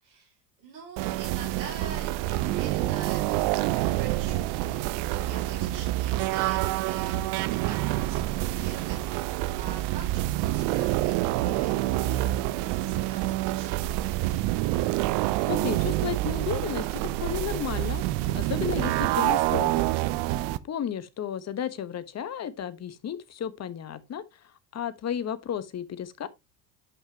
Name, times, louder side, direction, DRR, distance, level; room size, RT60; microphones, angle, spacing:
voice 1, 0.0-14.3 20.1-20.6, right 5 dB, 90° right, 4.8 m, -46 dB
sound 1, 1.0-20.6, right 16 dB, 55° right, 0.7 m, -27 dB
voice 2, 15.5-18.0 18.3-20.0 20.7-24.2 24.7-26.3, left 9 dB, 30° left, 1.2 m, -33 dB
11.0 x 5.7 x 2.9 m
hypercardioid pair, 80°, 48 cm